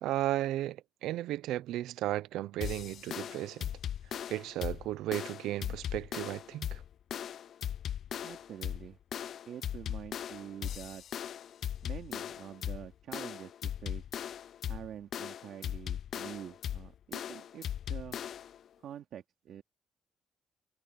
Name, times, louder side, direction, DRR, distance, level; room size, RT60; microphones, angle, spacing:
voice 1, 0.0-3.7 4.3-6.8, right 14 dB, 90° right, 0.7 m, -34 dB
sound 1, 2.6-18.6, left 10 dB, 65° left, 0.4 m, -38 dB
voice 2, 8.2-9.0 9.5-11.0 11.8-14.1 14.7-18.2 18.8-19.6, right 10 dB, 70° right, 2.6 m, -46 dB
cardioid pair, 90°, 0 cm